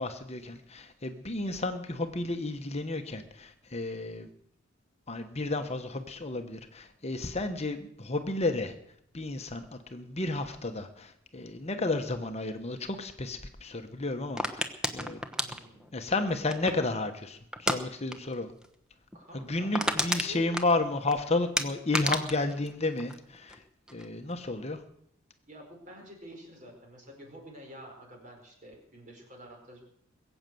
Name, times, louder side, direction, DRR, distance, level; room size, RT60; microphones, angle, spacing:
voice 1, 0.0-4.3 5.1-8.7 9.1-14.7 14.9-15.2 15.9-18.5 19.3-23.6 23.9-24.8, left 2 dB, 30° left, 6 dB, 1.0 m, -32 dB
sound 1, 14.4-16.9 17.5-17.8 18.1-18.3 18.6-18.7 19.1-19.2 19.5-21.1 21.6-23.6 23.9-24.3, equal, 5° right, 1.0 m, -31 dB
voice 2, 15.4-16.1 19.1-20.5 25.5-29.8, right 1 dB, 40° right, 2 dB, 4.8 m, -49 dB
21.5 x 8.1 x 7.7 m, 0.72 s
head